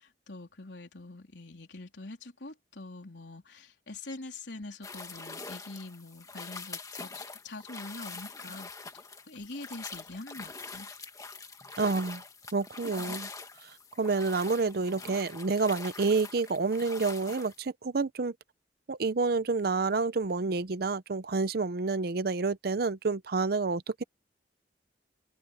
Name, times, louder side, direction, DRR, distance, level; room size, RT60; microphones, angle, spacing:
voice 1, 0.3-8.7 9.3-10.9, left 2 dB, 85° left, 3.7 m, -44 dB
sound 1, 4.8-17.6, left 4 dB, 20° left, 1.7 m, -44 dB
voice 2, 11.8-12.2 12.5-13.3 14.0-18.3 18.9-24.0, right 4 dB, 60° right, 0.6 m, -29 dB
head